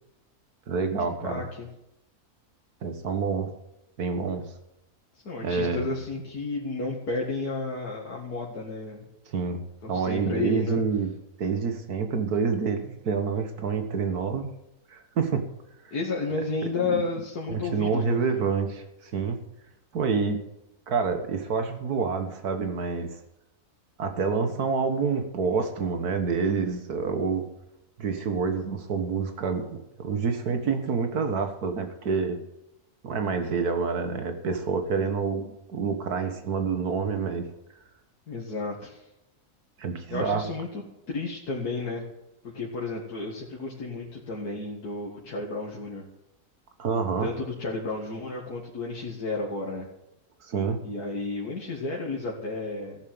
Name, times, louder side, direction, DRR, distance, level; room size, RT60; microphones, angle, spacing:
voice 1, 0.7-1.4 2.8-3.5 4.0-4.5 5.4-5.9 9.3-9.6 9.9-11.1 11.4-14.5 14.9-15.5 15.8-15.9 17.5-19.4 19.9-20.4 20.9-23.2 24.0-27.5 28.0-32.4 33.0-37.5 39.8-40.4 46.8-47.3 50.4-50.8, right 5 dB, 80° right, 7 dB, 1.9 m, -27 dB
voice 2, 1.2-1.7 5.2-9.0 9.8-10.8 15.9-18.2 35.0-35.1 38.3-39.1 40.1-42.0 42.4-46.0 47.2-49.9 50.8-53.0, left 3 dB, 85° left, -2 dB, 2.4 m, -32 dB
15.5 x 7.3 x 7.8 m, 0.87 s
omnidirectional pair, 1.6 m